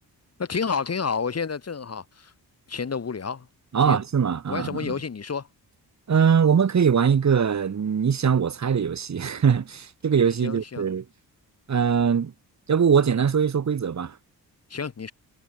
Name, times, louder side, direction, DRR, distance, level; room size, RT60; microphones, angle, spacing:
voice 1, 0.4-2.3 2.7-3.5 3.8-4.0 4.5-5.5 10.4-10.9 14.7-15.1, left 5 dB, 40° left, 3.2 m, -30 dB
voice 2, 3.7-4.9 6.1-11.0 11.7-12.3 12.7-14.2, right 7 dB, 45° right, 2.1 m, -22 dB
cardioid pair, 110°, 38 cm